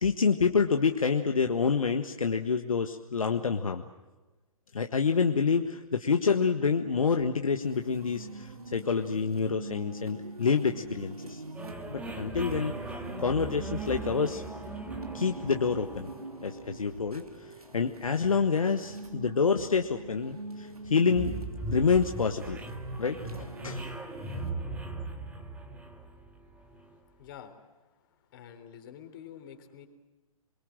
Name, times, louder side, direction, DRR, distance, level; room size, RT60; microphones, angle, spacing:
voice 1, 0.0-3.8 4.7-11.4 11.9-12.7 13.2-14.4 15.1-16.1 16.4-17.2 17.7-21.4 21.7-22.6 23.0-23.8, left 5 dB, 65° left, 5 dB, 1.6 m, -27 dB
sound 1, 7.6-24.5, right 2 dB, 80° right, 3.1 m, -43 dB
sound 2, 11.6-27.0, right 3 dB, 5° right, 2.2 m, -40 dB
voice 2, 26.6-27.6 28.3-29.9, left 9 dB, 35° left, 6 dB, 3.9 m, -48 dB
28.0 x 22.5 x 7.7 m, 1.1 s
figure-of-eight pair, 125°, 19 cm